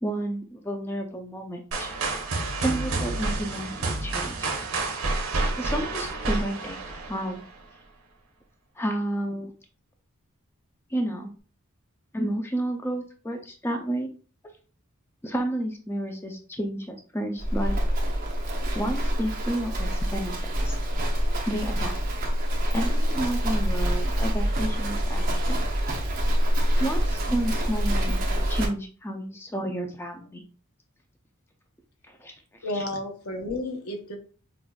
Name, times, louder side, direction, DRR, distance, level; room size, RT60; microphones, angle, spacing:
voice 1, 0.0-1.9 2.6-4.5 5.6-7.4 8.8-9.5 10.9-11.3 12.1-14.1 15.2-17.7 18.7-20.8 21.5-21.9 22.7-25.6 26.8-30.4 32.1-32.3, right 1 dB, 10° left, 4 dB, 0.4 m, -31 dB
sound 1, 1.7-7.6, right 3 dB, 70° right, 0.9 m, -29 dB
Livestock farm animals working animals, 17.4-28.7, equal, 45° right, 0.7 m, -26 dB
voice 2, 32.6-34.2, left 1 dB, 85° left, 4 dB, 0.8 m, -32 dB
5.0 x 2.4 x 2.3 m, 0.39 s
head